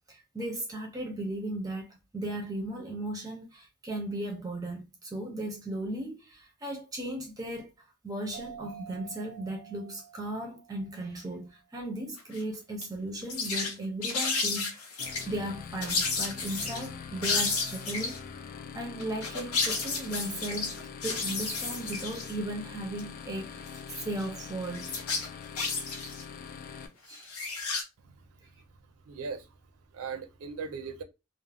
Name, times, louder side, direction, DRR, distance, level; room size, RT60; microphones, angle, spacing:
voice 1, 0.1-7.7 8.0-14.9 15.3-18.2 18.7-20.8 21.0-24.9 27.1-27.4, right 1 dB, 15° right, 0.5 m, -36 dB
sound 1, 8.3-11.6, right 7 dB, 85° left, 1.1 m, -49 dB
sound 2, 12.2-12.4 12.8-12.9 13.3-13.7 14.0-15.3 15.8-16.9 17.2-18.2 19.0-22.3 23.0-23.1 23.7-24.3 24.7-26.2 27.1-27.8, left 4 dB, 70° left, 0.8 m, -32 dB
sound 3, 15.0-26.9, left 6 dB, 40° left, 0.3 m, -43 dB
voice 2, 28.0-28.7 29.1-29.5 29.9-31.0, right 5 dB, 70° right, 0.4 m, -39 dB
2.3 x 2.0 x 3.3 m
head